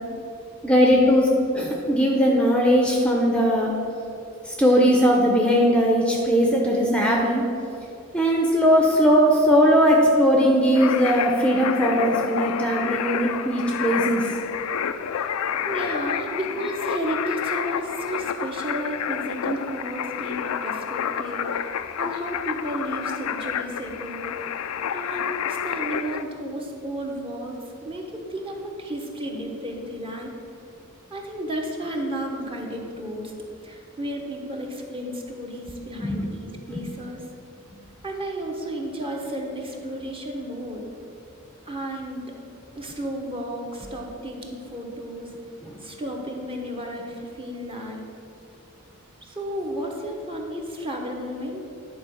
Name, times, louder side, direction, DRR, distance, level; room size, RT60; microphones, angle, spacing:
voice 1, 0.6-1.3 1.5-3.7 4.4-7.4 8.1-14.3 36.0-36.2 36.7-36.8 45.6-45.8, equal, 5° left, -1 dB, 0.8 m, -19 dB
sound 1, 10.7-26.2, left 8 dB, 75° left, 0.4 m, -29 dB
voice 2, 15.6-21.7 22.0-24.3 24.9-30.3 31.1-33.3 33.6-37.2 38.0-40.9 41.7-42.3 42.7-45.3 45.8-48.0 49.2-51.7, right 1 dB, 25° right, 0 dB, 1.2 m, -32 dB
11.0 x 4.6 x 7.1 m, 2.7 s
head